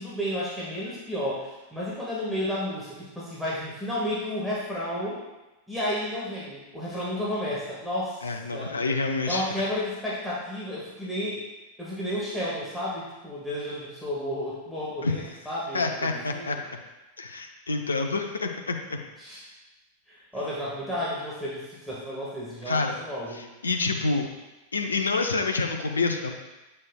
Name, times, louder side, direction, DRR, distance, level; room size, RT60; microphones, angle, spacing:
voice 1, 0.0-5.2 5.7-8.7 9.3-11.4 11.8-16.6 19.2-19.4 20.1-23.4, left 1 dB, ahead, -8 dB, 1.5 m, -32 dB
voice 2, 8.2-9.5 15.0-15.1 15.7-16.6 17.2-19.0 22.7-23.0 23.3-24.3 24.7-26.3, left 3 dB, 75° left, 4 dB, 0.6 m, -27 dB
8.1 x 5.4 x 2.2 m, 1.0 s
figure-of-eight pair, 90°, 0 cm